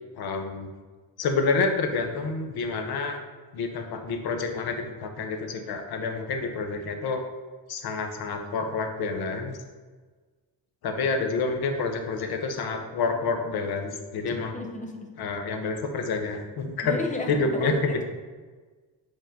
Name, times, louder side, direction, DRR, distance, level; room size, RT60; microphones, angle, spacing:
voice 1, 0.2-0.7 1.2-3.2 3.5-7.2 7.7-9.5 10.8-14.6 15.2-17.0 17.3-17.9, left 4 dB, 55° left, 5 dB, 0.8 m, -28 dB
voice 2, 14.3-15.1 16.8-18.0, left 2 dB, 15° left, 1 dB, 0.6 m, -33 dB
5.2 x 3.8 x 5.1 m, 1.4 s
cardioid pair, 175°, 44 cm